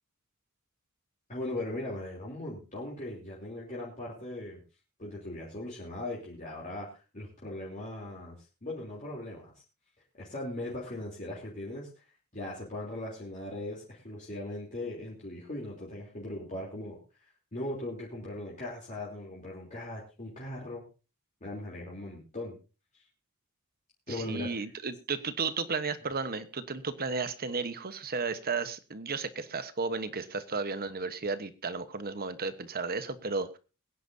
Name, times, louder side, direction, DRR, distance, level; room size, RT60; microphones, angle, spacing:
voice 1, 1.3-4.6 5.0-8.4 8.6-9.5 10.2-12.0 12.3-17.0 17.5-20.8 21.4-22.6 22.9-23.0 24.1-24.5, left 1 dB, 35° left, -5 dB, 3.4 m, -39 dB
voice 2, 24.1-33.6, right 4 dB, 45° right, 12 dB, 1.1 m, -34 dB
22.5 x 10.0 x 2.7 m, 0.32 s
head